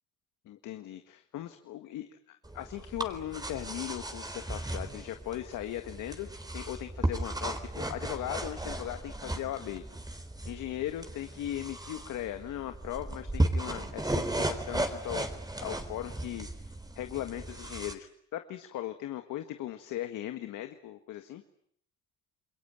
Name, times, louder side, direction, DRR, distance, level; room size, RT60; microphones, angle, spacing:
voice 1, 0.5-9.8 10.5-15.3 15.6-16.5 17.0-18.1 18.3-21.4, left 12 dB, 90° left, 7 dB, 1.8 m, -38 dB
sound 1, 2.4-17.9, right 1 dB, 15° right, 3.8 m, -35 dB
28.5 x 22.0 x 8.9 m, 0.67 s
cardioid pair, 90°, 30 cm